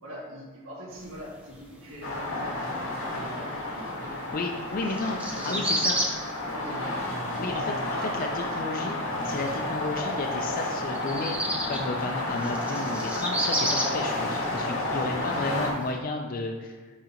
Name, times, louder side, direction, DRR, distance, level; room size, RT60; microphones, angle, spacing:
voice 1, 0.0-4.2 4.9-6.2 6.4-7.2 7.5-8.7 15.1-15.4, equal, 90° right, -5 dB, 1.8 m, -42 dB
sound 1, 0.9-15.9, equal, 5° right, 0.8 m, -34 dB
sound 2, 2.0-15.7, left 2 dB, 70° left, 1.7 m, -31 dB
voice 2, 4.3-5.2 5.4-6.0 7.4-7.7 8.0-9.0 9.2-11.4 11.7-16.8, left 3 dB, 45° left, 2 dB, 0.4 m, -32 dB
10.5 x 3.8 x 3.0 m, 1.5 s
head